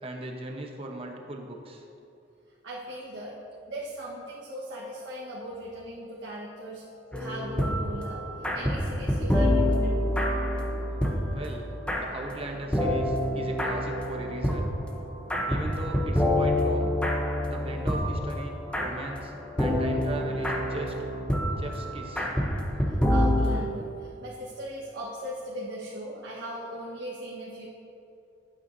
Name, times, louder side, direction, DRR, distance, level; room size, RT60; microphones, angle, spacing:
voice 1, 0.0-1.8 11.3-11.7 11.9-14.7 15.5-17.0 17.5-19.3 19.6-20.9 21.6-22.3, right 1 dB, 30° right, 2 dB, 0.9 m, -38 dB
voice 2, 2.6-3.3 3.7-6.8 7.1-8.2 8.5-10.0 17.5-17.7 23.1-27.7, equal, 85° right, -7 dB, 1.3 m, -38 dB
sound 1, 7.1-23.6, left 1 dB, 5° left, 0.8 m, -27 dB
12.0 x 8.8 x 2.7 m, 2.7 s
head